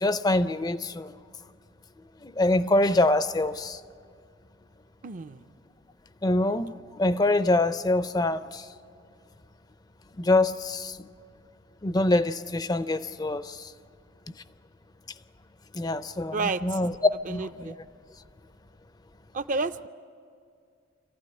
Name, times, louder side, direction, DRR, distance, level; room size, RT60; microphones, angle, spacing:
voice 1, 0.0-1.1 2.2-3.8 6.2-8.6 10.2-11.0 11.8-13.7 15.7-16.9 17.3-17.7, left 2 dB, 20° left, 13 dB, 0.5 m, -25 dB
voice 2, 5.0-5.4 16.3-16.8 17.3-17.8 19.3-19.9, right 3 dB, 40° right, 12 dB, 0.5 m, -30 dB
26.5 x 15.0 x 9.7 m, 2.3 s
head